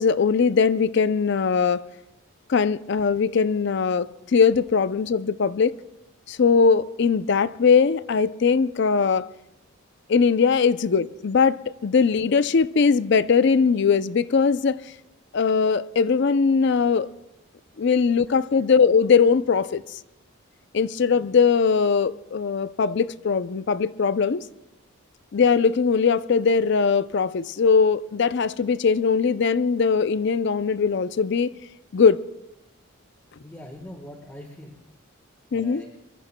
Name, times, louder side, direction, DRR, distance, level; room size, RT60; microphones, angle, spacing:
voice 1, 0.0-1.8 2.5-5.7 6.3-9.3 10.1-14.8 15.3-17.1 17.8-19.8 20.7-24.4 25.3-31.5 31.9-32.2 35.5-35.8, left 5 dB, 55° left, 0.4 m, -20 dB
voice 2, 33.4-34.8 35.5-35.9, left 1 dB, 10° left, 1.3 m, -42 dB
23.5 x 23.0 x 2.2 m
head